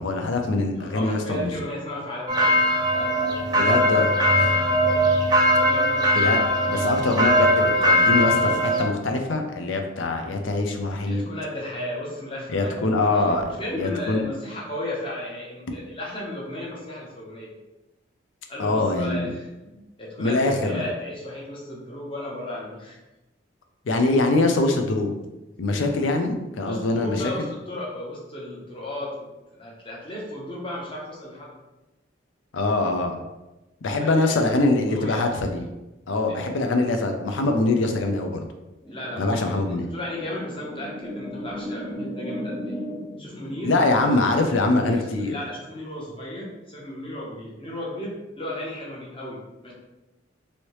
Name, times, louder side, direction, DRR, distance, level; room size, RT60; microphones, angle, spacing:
voice 1, 0.0-1.5 3.5-4.1 6.1-6.4 6.7-11.3 12.5-14.2 18.6-19.3 20.2-20.9 23.9-25.1 25.6-27.5 32.5-33.2 33.8-35.6 36.1-38.4 39.2-39.9 43.6-45.3, left 2 dB, 75° left, 4 dB, 0.5 m, -23 dB
voice 2, 0.8-2.6 2.9-5.2 5.6-6.1 11.1-13.2 13.6-17.5 18.5-23.0 26.6-29.3 29.6-31.5 34.0-34.4 34.9-35.3 36.3-36.5 38.9-42.8 43.2-43.7 44.9-49.7, left 1 dB, 25° left, -5 dB, 0.8 m, -35 dB
sound 1, 2.3-8.8, equal, 20° right, 0.3 m, -20 dB
sound 2, 38.8-45.7, equal, 10° left, 1.1 m, -36 dB
3.2 x 2.7 x 3.0 m, 1.0 s
head